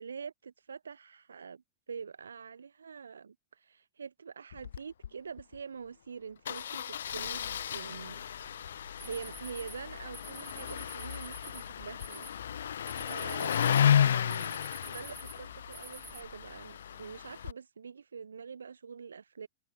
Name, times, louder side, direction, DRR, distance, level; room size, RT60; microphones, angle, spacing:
voice 1, 0.0-1.6 1.9-8.2 9.0-12.3 13.0-19.5, right 6 dB, 70° right, 1.0 m, -45 dB
Engine starting, 4.5-4.8 5.0-5.1 5.4-5.6 6.5-17.5, left 9 dB, 65° left, 0.3 m, -33 dB
sound 1, 7.9-16.6, right 20 dB, 50° right, 4.2 m, -62 dB
sound 2, 9.0-16.2, right 3 dB, 10° right, 0.7 m, -51 dB
figure-of-eight pair, 90°, 0 cm